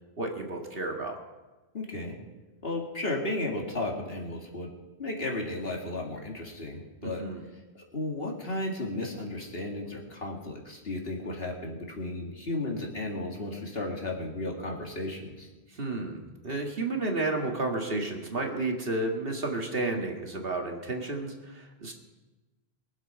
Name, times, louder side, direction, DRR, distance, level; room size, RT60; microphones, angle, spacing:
voice 1, 0.2-1.2 7.0-7.4 15.7-21.9, right 2 dB, 60° right, 2 dB, 2.0 m, -32 dB
voice 2, 1.7-2.2 2.6-4.7 5.0-7.2 7.7-15.5, left 2 dB, 60° left, 0 dB, 2.4 m, -34 dB
22.5 x 7.7 x 5.8 m, 1.2 s
omnidirectional pair, 1.1 m